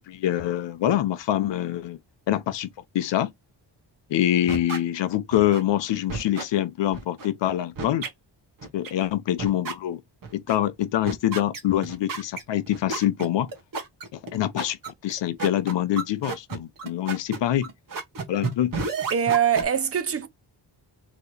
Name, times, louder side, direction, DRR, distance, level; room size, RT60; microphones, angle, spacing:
voice 1, 0.1-2.0 2.3-3.3 4.1-8.1 8.7-10.0 10.3-13.5 14.1-14.8 15.0-17.7 18.3-18.7, left 12 dB, 80° left, 0.7 m, -25 dB
sound 1, 4.5-4.8 5.3-5.6 6.1-6.4 6.9-7.3 7.8-8.1 8.6-8.9 9.4-9.7 10.2-10.6 11.0-19.6, right 4 dB, 50° right, 1.2 m, -31 dB
voice 2, 19.1-20.3, right 8 dB, 35° right, 0.6 m, -23 dB
4.5 x 3.0 x 3.2 m
wide cardioid pair, 175°, 43 cm